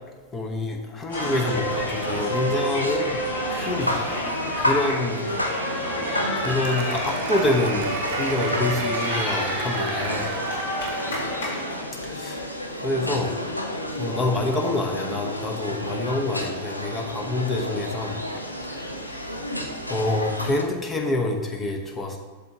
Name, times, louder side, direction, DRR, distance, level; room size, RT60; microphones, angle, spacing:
voice 1, 0.3-3.1 3.5-4.0 4.6-5.6 6.4-10.4 12.0-12.4 12.8-13.3 14.0-18.2 18.6-18.9 19.9-22.2, left 2 dB, 20° left, 2 dB, 0.9 m, -27 dB
sound 1, 1.1-20.6, left 1 dB, 85° left, 0.7 m, -31 dB
sound 2, 1.1-11.8, equal, 65° left, 1.9 m, -30 dB
Applause, 5.6-11.4, right 6 dB, 50° right, 0.8 m, -35 dB
8.2 x 6.4 x 2.8 m, 1.3 s
figure-of-eight pair, 90°, 0 cm